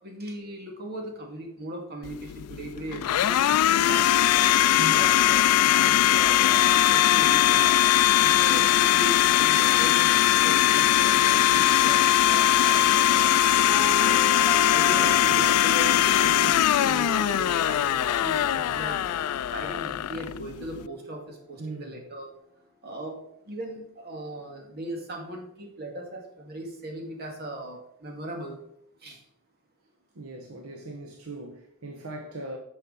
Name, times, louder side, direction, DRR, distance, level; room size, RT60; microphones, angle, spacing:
voice 1, 0.0-4.3 4.9-7.7 8.2-13.9 14.7-19.0 19.5-22.3 22.8-23.1 23.5-28.6 29.0-29.2, right 1 dB, 45° right, 2.2 m, -38 dB
Domestic sounds home sounds, 2.0-20.9, left 12 dB, 80° left, 0.3 m, -21 dB
sound 1, 13.6-21.6, right 1 dB, 10° left, 1.8 m, -40 dB
voice 2, 21.6-22.0 30.1-32.6, right 2 dB, 75° right, 1.1 m, -39 dB
11.5 x 6.5 x 4.1 m
head